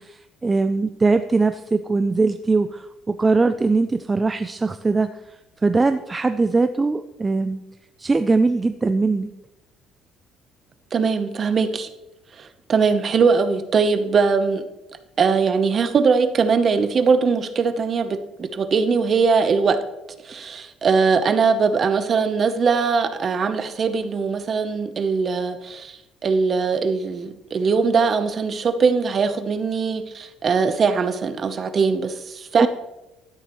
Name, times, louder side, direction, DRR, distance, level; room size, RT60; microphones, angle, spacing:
voice 1, 0.0-7.6 8.0-9.3 32.6-32.7, right 3 dB, 15° right, 0.3 m, -21 dB
voice 2, 10.9-11.9 12.4-14.6 15.2-19.8 20.2-32.7, right 5 dB, 35° right, 0.8 m, -21 dB
12.5 x 10.0 x 3.1 m
cardioid pair, 150°, 0 cm